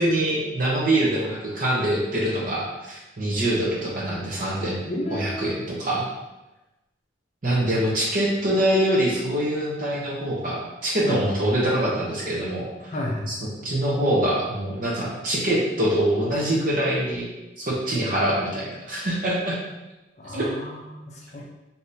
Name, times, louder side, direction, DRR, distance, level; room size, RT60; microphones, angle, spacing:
voice 1, 0.0-4.8 5.1-6.0 7.4-12.9 13.3-17.3 17.6-19.6 20.3-20.5, right 1 dB, 40° right, -3 dB, 0.7 m, -24 dB
voice 2, 4.8-5.8 11.0-11.2 12.9-13.3 20.2-21.4, left 1 dB, 35° left, -2 dB, 0.5 m, -32 dB
3.4 x 2.7 x 2.7 m, 1.0 s
head